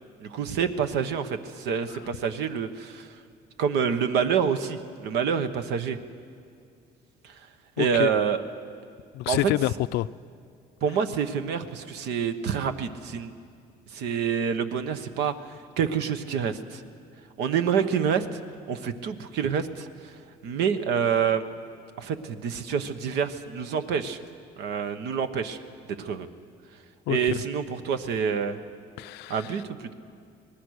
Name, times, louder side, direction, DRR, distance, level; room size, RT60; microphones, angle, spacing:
voice 1, 0.2-3.1 3.6-6.0 7.2-7.4 7.8-8.4 9.3-9.4 10.8-13.3 13.9-15.3 15.8-16.8 17.4-18.3 18.7-20.1 20.4-21.4 22.0-24.2 24.6-25.6 26.0-26.3 27.1-28.6 29.3-29.9, right 7 dB, 85° right, 1.2 m, -27 dB
voice 2, 7.8-8.1 9.1-10.1 27.1-27.4 29.0-29.6, left 16 dB, 80° left, 0.4 m, -28 dB
25.0 x 19.0 x 6.5 m
cardioid pair, 110°, 17 cm